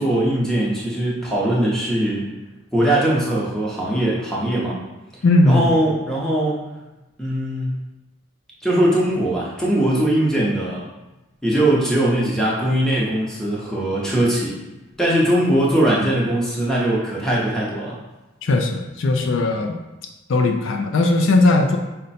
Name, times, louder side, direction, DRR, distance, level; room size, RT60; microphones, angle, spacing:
voice 1, 0.0-2.2 2.7-4.7 5.5-6.6 7.2-7.7 8.6-10.8 11.4-14.5 15.0-18.0, right 1 dB, 5° left, -5 dB, 0.8 m, -20 dB
voice 2, 5.2-5.8 18.4-19.8 20.3-21.8, left 2 dB, 70° left, 3 dB, 0.4 m, -18 dB
5.1 x 2.2 x 4.1 m, 1.0 s
head